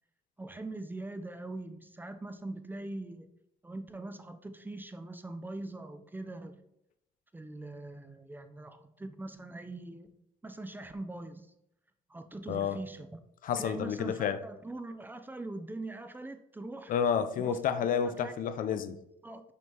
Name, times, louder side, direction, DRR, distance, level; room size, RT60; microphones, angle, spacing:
voice 1, 0.4-3.3 3.6-6.6 7.3-11.5 12.1-13.1 13.6-16.9 17.4-17.6 18.0-18.3 18.7-19.4, right 2 dB, 10° right, 8 dB, 0.5 m, -42 dB
voice 2, 12.5-12.8 13.4-14.4 16.9-18.9, left 7 dB, 55° left, 11 dB, 0.5 m, -30 dB
6.1 x 5.4 x 2.9 m, 0.80 s
cardioid pair, 110°, 17 cm